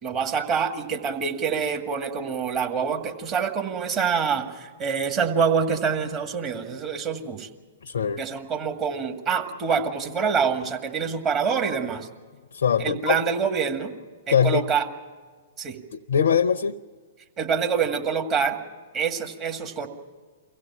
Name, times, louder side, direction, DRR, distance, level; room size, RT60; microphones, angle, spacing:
voice 1, 0.0-7.5 8.2-12.1 12.8-13.9 14.3-14.9 15.6-15.8 17.4-18.6 18.9-19.9, right 6 dB, 30° right, 3 dB, 2.0 m, -26 dB
voice 2, 7.8-8.2 12.5-13.2 14.3-14.6 15.9-16.8, left 7 dB, 70° left, 10 dB, 0.6 m, -22 dB
24.0 x 16.0 x 7.4 m, 1.5 s
figure-of-eight pair, 110°, 0 cm